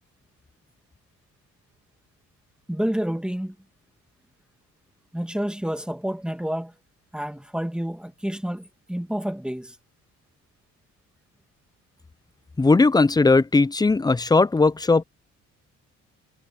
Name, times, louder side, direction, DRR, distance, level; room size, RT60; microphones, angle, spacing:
voice 1, 2.7-3.6 5.1-6.7 7.1-9.8, equal, 5° right, 2.2 m, -29 dB
voice 2, 12.6-15.0, left 3 dB, 15° left, 0.6 m, -18 dB
cardioid pair, 90°, 30 cm